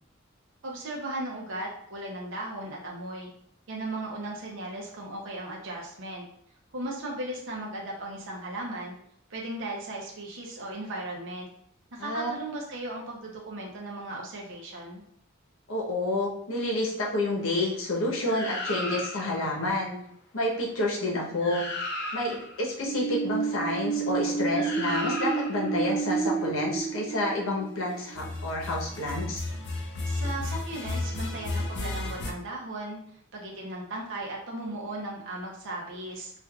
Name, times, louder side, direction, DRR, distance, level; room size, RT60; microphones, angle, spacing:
voice 1, 0.6-3.3 3.7-6.2 6.7-8.9 9.3-11.5 11.9-15.0 30.1-33.0 33.3-36.3, right 1 dB, 65° right, -2 dB, 0.7 m, -36 dB
voice 2, 12.0-12.4 15.7-20.0 20.3-21.7 22.1-29.4, left 1 dB, 75° left, -2 dB, 0.9 m, -29 dB
sound 1, 18.3-19.4 21.1-21.2 21.4-22.6 24.5-25.7 28.0-32.3, left 2 dB, 55° left, 0.6 m, -34 dB
sound 2, 22.8-28.5, right 5 dB, 5° right, 0.7 m, -30 dB
4.5 x 2.4 x 2.3 m, 0.69 s
head